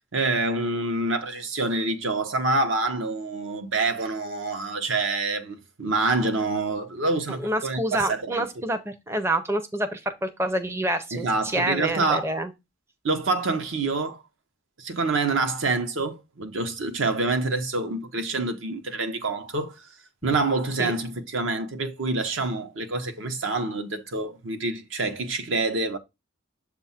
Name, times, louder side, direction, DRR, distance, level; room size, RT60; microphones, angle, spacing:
voice 1, 0.1-8.4 11.1-12.3 13.0-14.2 14.8-19.8 20.2-26.0, right 3 dB, 70° right, 0.8 m, -27 dB
voice 2, 7.4-12.5 20.8-20.9, right 1 dB, 10° right, 0.5 m, -27 dB
7.2 x 2.4 x 5.6 m
head